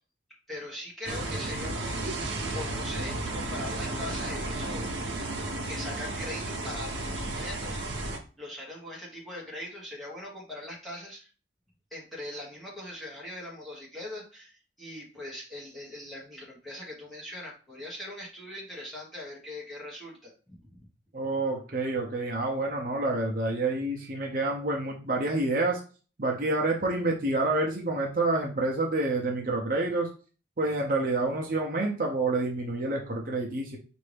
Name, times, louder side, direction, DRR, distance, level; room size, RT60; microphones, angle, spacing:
voice 1, 0.5-4.8 5.7-8.1 8.4-11.3 11.9-20.8 21.2-21.3, left 1 dB, ahead, -6 dB, 1.3 m, -41 dB
sound 1, 1.1-8.2, right 2 dB, 85° right, 0.8 m, -33 dB
voice 2, 21.1-25.8 26.2-30.1 30.6-33.8, right 2 dB, 50° right, -1 dB, 0.7 m, -28 dB
4.2 x 2.6 x 3.4 m, 0.37 s
head